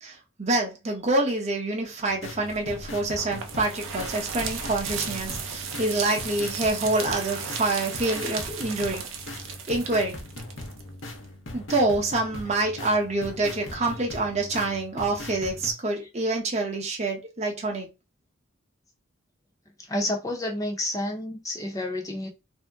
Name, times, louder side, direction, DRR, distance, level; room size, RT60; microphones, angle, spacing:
voice 1, 0.0-9.0 9.7-10.2 11.5-17.9, right 2 dB, 35° right, 0.8 m, -26 dB
sound 1, 2.1-15.7, left 1 dB, 70° left, 0.8 m, -40 dB
sound 2, 2.4-11.3, right 6 dB, 75° right, 0.6 m, -36 dB
voice 2, 19.9-22.3, left 1 dB, 15° left, 0.7 m, -29 dB
2.7 x 2.1 x 3.4 m
head